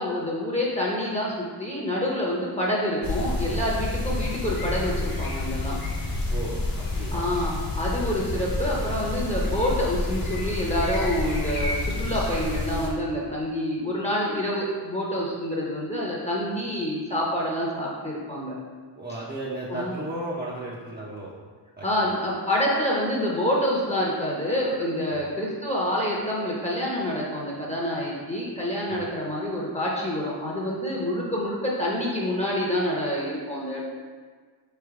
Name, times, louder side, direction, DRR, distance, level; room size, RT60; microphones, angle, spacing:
voice 1, 0.0-5.8 7.1-18.5 19.7-20.0 21.8-33.8, equal, 15° left, -4 dB, 0.8 m, -27 dB
sound 1, 3.0-12.9, left 2 dB, 50° left, 1.1 m, -29 dB
voice 2, 6.3-7.3 19.0-21.3 21.8-22.1 25.1-25.2 28.9-29.1, right 1 dB, 20° right, -7 dB, 0.6 m, -35 dB
4.3 x 3.4 x 3.6 m, 1.5 s
cardioid pair, 95°, 44 cm